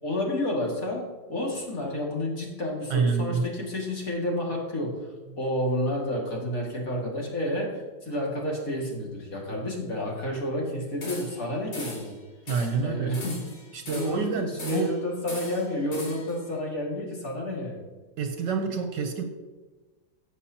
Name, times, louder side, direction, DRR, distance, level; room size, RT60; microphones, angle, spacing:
voice 1, 0.0-1.0 1.3-12.2 12.8-13.4 13.9-17.9, left 1 dB, 45° left, -3 dB, 2.6 m, -30 dB
voice 2, 2.9-3.5 12.5-13.1 13.7-14.9 18.2-19.2, right 5 dB, 65° right, 5 dB, 1.4 m, -27 dB
sound 1, 11.0-11.5 11.7-12.1 12.5-12.8 13.1-14.2 14.6-15.0 15.3-16.4, left 2 dB, 85° left, 3.1 m, -39 dB
16.0 x 6.9 x 2.9 m, 1.2 s
omnidirectional pair, 2.1 m